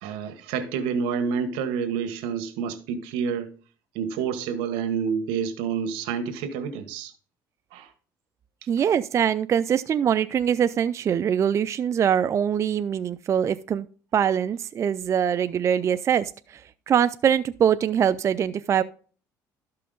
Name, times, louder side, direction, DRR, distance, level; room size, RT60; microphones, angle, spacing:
voice 1, 0.0-3.5 3.9-7.1 7.7-7.9, right 6 dB, 85° right, 1.4 m, -28 dB
voice 2, 8.7-13.9 14.1-16.6 16.9-18.8, right 8 dB, 40° right, 0.4 m, -23 dB
12.5 x 5.7 x 3.9 m
cardioid pair, 105°, 8 cm